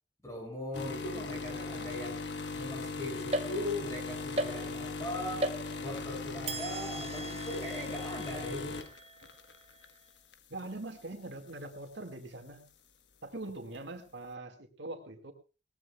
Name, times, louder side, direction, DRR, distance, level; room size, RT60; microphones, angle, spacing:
voice 1, 0.2-2.2 2.5-5.5 5.8-8.8, left 1 dB, 15° left, 1 dB, 6.5 m, -39 dB
sound 1, 0.7-9.9 10.3-10.6 11.5-11.6, left 3 dB, 75° left, 1.3 m, -39 dB
sound 2, 3.3-4.0 4.4-5.0 5.4-6.1 6.5-9.9, right 1 dB, 30° right, 0.9 m, -39 dB
voice 2, 10.5-12.7 13.2-15.3, right 2 dB, 75° right, 5 dB, 2.1 m, -42 dB
20.5 x 18.0 x 2.4 m, 0.31 s
head